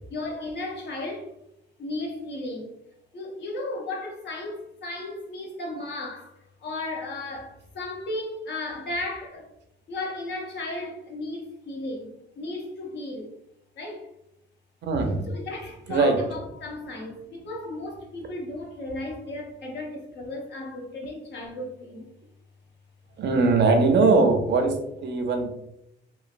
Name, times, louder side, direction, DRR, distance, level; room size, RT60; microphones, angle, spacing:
voice 1, 0.1-1.3 1.8-2.8 3.1-6.3 6.6-9.5 9.9-13.3 13.8-14.1 15.3-22.1, left 2 dB, 60° left, 0.8 m, -35 dB
voice 2, 14.8-15.2 15.9-16.2 23.2-25.5, right 3 dB, 60° right, 0.6 m, -21 dB
3.1 x 2.4 x 2.4 m
cardioid pair, 90°, 20 cm